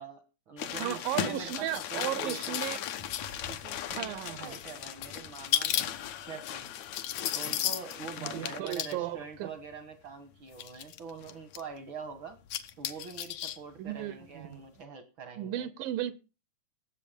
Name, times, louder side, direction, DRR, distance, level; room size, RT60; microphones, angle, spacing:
voice 1, 0.0-2.9 3.5-6.7 7.3-12.4 12.8-15.7, right 5 dB, 60° right, 9 dB, 1.3 m, -44 dB
sound 1, 0.6-8.9 9.7-9.8 10.5-11.6 12.3-13.6 13.9-14.0, left 11 dB, 70° left, 1.9 m, -35 dB
voice 2, 0.7-2.8 3.9-4.6 8.2-9.5 13.8-14.6 15.4-16.1, right 12 dB, 80° right, 15 dB, 2.5 m, -35 dB
18.0 x 7.9 x 5.1 m, 0.33 s
omnidirectional pair, 4.0 m